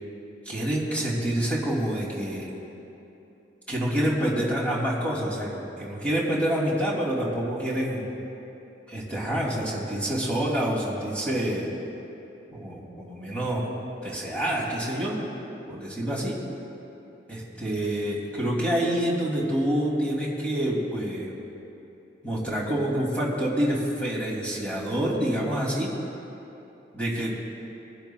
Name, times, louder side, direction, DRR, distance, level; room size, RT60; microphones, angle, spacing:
voice 1, 0.4-2.5 3.7-8.1 8.9-11.7 12.5-13.7 14.0-15.2 15.7-16.3 17.3-21.3 22.2-25.9 26.9-27.4, right 1 dB, 10° left, -6 dB, 2.8 m, -27 dB
21.5 x 10.5 x 2.4 m, 2.9 s
head